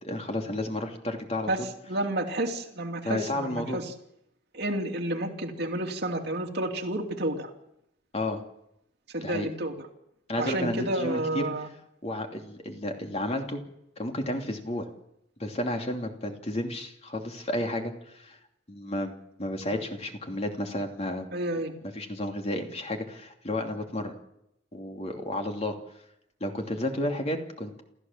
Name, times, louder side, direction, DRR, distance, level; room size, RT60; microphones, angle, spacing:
voice 1, 0.0-1.7 3.0-3.8 8.1-8.4 9.2-9.5 10.3-11.4 12.0-13.6 14.0-14.9 15.4-18.4 18.7-19.1 19.4-21.3 21.8-24.1 24.7-25.8 26.4-27.7, left 1 dB, 35° left, 3 dB, 2.9 m, -32 dB
voice 2, 1.5-3.8 4.5-7.5 9.1-9.7 10.4-11.7 21.3-21.8, right 1 dB, 60° right, 3 dB, 2.7 m, -30 dB
28.5 x 14.5 x 7.4 m, 0.81 s
head